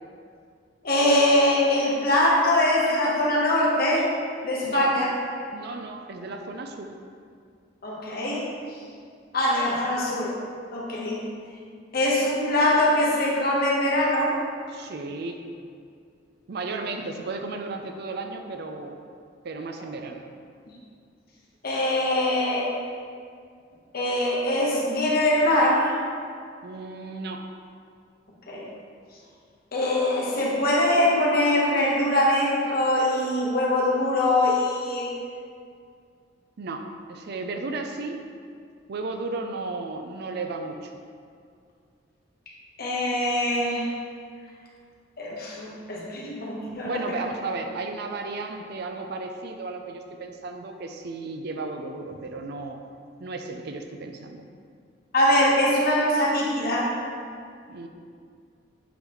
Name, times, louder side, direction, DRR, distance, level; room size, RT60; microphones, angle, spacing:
voice 1, 0.8-4.1 4.4-5.1 7.8-8.5 9.3-10.3 10.7-11.2 11.9-14.4 20.7-20.8 21.6-22.8 23.9-25.9 28.5-28.7 29.7-35.1 42.8-43.9 45.2-47.2 55.1-56.9, left 1 dB, 55° left, -4 dB, 1.2 m, -23 dB
voice 2, 4.6-5.0 5.5-6.9 14.7-15.4 16.5-19.0 19.4-20.2 26.6-27.5 36.6-38.2 38.9-40.9 46.8-52.8 53.2-54.4 57.7-57.9, right 3 dB, 60° right, 5 dB, 0.5 m, -34 dB
8.1 x 3.9 x 3.1 m, 2.2 s
head